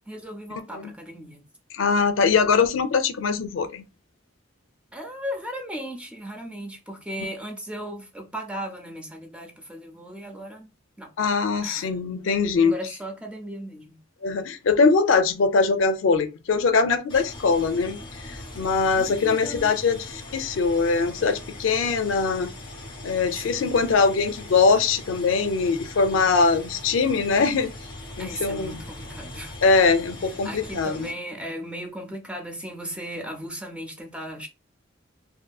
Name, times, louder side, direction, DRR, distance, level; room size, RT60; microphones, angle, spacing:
voice 1, 0.1-1.5 4.9-10.7 11.0-11.1 11.6-12.0 12.6-14.0 19.0-19.8 23.3-23.8 28.2-29.5 30.4-34.5, equal, 5° right, 0.5 m, -36 dB
voice 2, 1.7-3.8 11.2-12.7 14.2-18.0 18.2-22.5 23.0-27.7 28.2-28.8 29.6-31.1, left 4 dB, 75° left, 0.4 m, -22 dB
sound 1, 17.1-31.1, left 1 dB, 25° left, 0.8 m, -40 dB
2.6 x 2.6 x 2.3 m
head